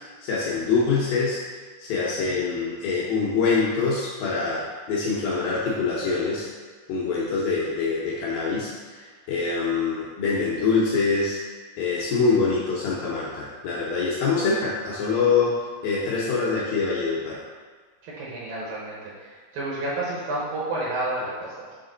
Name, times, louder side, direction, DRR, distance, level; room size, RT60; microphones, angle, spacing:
voice 1, 0.2-1.4 1.8-6.5 6.9-11.4 11.8-15.6 15.8-17.4, left 4 dB, 75° left, -6 dB, 2.2 m, -24 dB
voice 2, 18.0-21.7, right 2 dB, 70° right, -6 dB, 2.3 m, -30 dB
7.2 x 3.4 x 3.8 m, 1.5 s
omnidirectional pair, 4.8 m